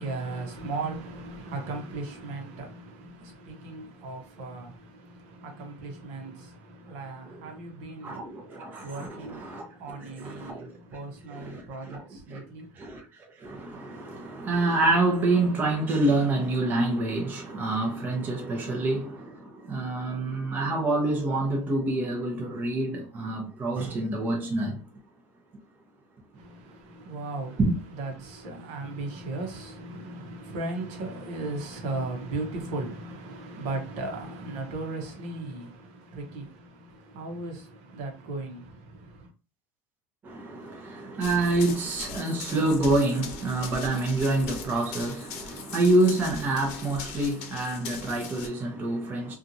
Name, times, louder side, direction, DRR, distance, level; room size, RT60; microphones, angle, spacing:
voice 1, 0.0-12.8 26.3-27.6 28.0-39.3, right 2 dB, 65° right, 0.9 m, -37 dB
voice 2, 8.0-10.7 11.3-12.0 12.3-12.4 12.8-13.1 13.4-24.8 27.6-27.8 40.2-49.3, right 2 dB, 25° right, 0.7 m, -27 dB
Run, 41.2-48.5, left 6 dB, 70° left, 0.7 m, -40 dB
2.7 x 2.4 x 2.6 m
cardioid pair, 150°, 8 cm